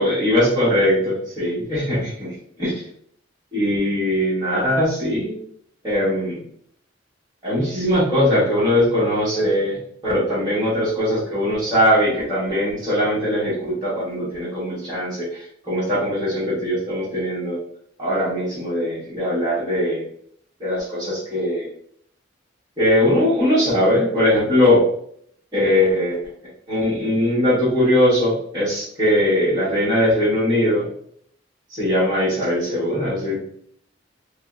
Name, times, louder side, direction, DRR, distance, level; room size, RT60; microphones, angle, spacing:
voice 1, 0.0-2.7 3.5-5.4 5.8-6.4 7.4-9.8 10.0-17.6 18.0-20.0 20.6-21.7 22.8-24.8 25.5-26.2 26.7-30.9 31.7-33.4, left 1 dB, 20° right, -10 dB, 1.1 m, -20 dB
3.5 x 2.0 x 2.3 m, 0.65 s
head